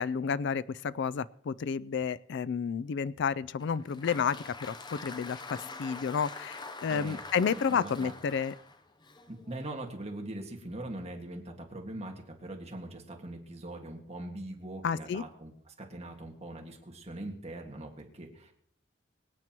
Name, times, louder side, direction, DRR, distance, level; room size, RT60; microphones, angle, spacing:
voice 1, 0.0-8.5 14.8-15.2, left 6 dB, 65° left, 18 dB, 0.4 m, -31 dB
Applause, 3.6-9.9, left 3 dB, 20° left, 0.7 m, -45 dB
voice 2, 6.9-7.2 7.7-8.1 9.3-18.5, right 1 dB, 35° right, 2 dB, 1.8 m, -42 dB
24.0 x 9.2 x 3.0 m, 0.64 s
head